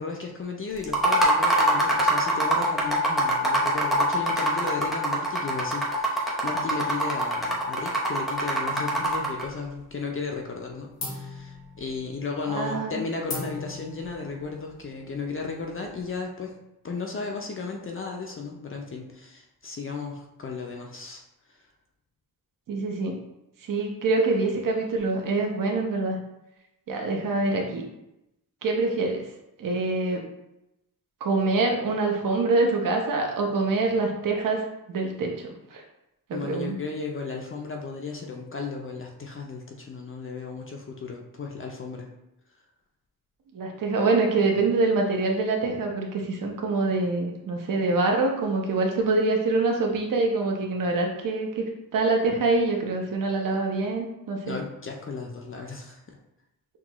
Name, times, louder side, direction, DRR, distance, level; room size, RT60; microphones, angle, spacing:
voice 1, 0.0-16.6 16.8-21.2 21.5-21.7 36.3-42.1 54.4-56.2, left 4 dB, 35° left, 1 dB, 0.5 m, -35 dB
sound 1, 0.8-9.4, right 1 dB, ahead, 0.7 m, -24 dB
sound 2, 9.1-9.9 10.2-10.6 11.0-16.1, left 3 dB, 90° left, 1.2 m, -40 dB
voice 2, 12.5-13.0 22.7-23.2 23.6-26.2 26.9-27.8 28.6-29.2 29.6-30.2 31.2-34.6 34.9-35.8 36.3-36.8 43.5-51.7 51.9-54.6, right 3 dB, 65° right, 1 dB, 0.8 m, -25 dB
6.0 x 2.3 x 2.9 m, 0.89 s
wide cardioid pair, 155°, 36 cm